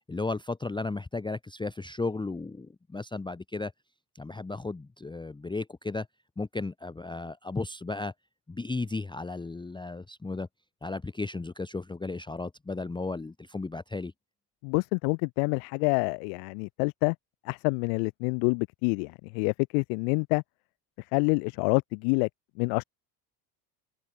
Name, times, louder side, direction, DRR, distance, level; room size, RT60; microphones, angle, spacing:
voice 1, 0.1-3.7 4.2-6.1 6.4-8.1 8.5-10.5 10.8-14.1, left 3 dB, 10° left, 0.7 m, -34 dB
voice 2, 14.6-17.1 17.4-20.4 21.1-22.3 22.6-22.8, left 40 dB or more, 80° left, 1.3 m, -27 dB
open air
supercardioid pair, 85°, 49 cm